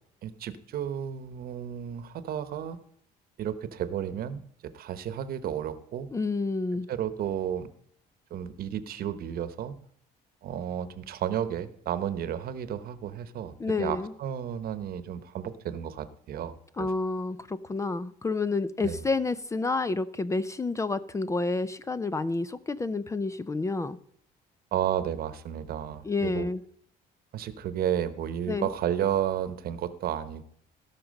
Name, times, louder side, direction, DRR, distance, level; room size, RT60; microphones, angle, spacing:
voice 1, 0.2-2.8 3.4-4.4 4.7-6.1 6.9-7.7 8.3-9.8 10.4-16.9 18.8-19.0 24.7-26.5 27.3-30.5, right 10 dB, 60° right, 13 dB, 1.0 m, -32 dB
voice 2, 6.1-6.9 13.6-14.1 16.8-24.0 26.0-26.6 28.5-28.7, left 3 dB, 20° left, 15 dB, 0.5 m, -29 dB
16.5 x 5.9 x 5.3 m, 0.65 s
cardioid pair, 110°, 17 cm